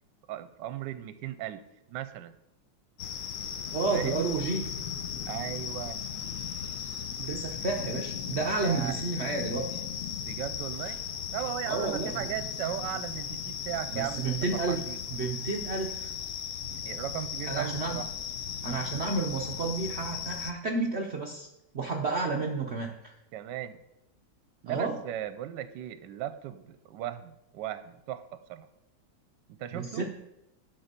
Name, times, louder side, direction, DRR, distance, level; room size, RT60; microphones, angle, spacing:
voice 1, 0.3-1.6 1.9-2.4 3.9-4.3 5.3-6.0 8.3-9.0 10.2-11.0 11.3-14.4 14.7-15.0 16.7-18.1 23.3-23.8 24.6-28.7 29.6-30.0, right 12 dB, 75° right, 12 dB, 1.2 m, -37 dB
sound 1, 3.0-20.5, left 8 dB, 60° left, 0.9 m, -37 dB
voice 2, 3.7-4.6 7.2-9.8 11.7-12.2 13.9-14.8 15.1-16.1 17.5-18.0 18.6-21.5 21.7-23.1 24.7-25.0 29.7-30.0, right 3 dB, 60° right, 1 dB, 0.7 m, -31 dB
12.0 x 4.3 x 5.2 m, 0.86 s
omnidirectional pair, 2.0 m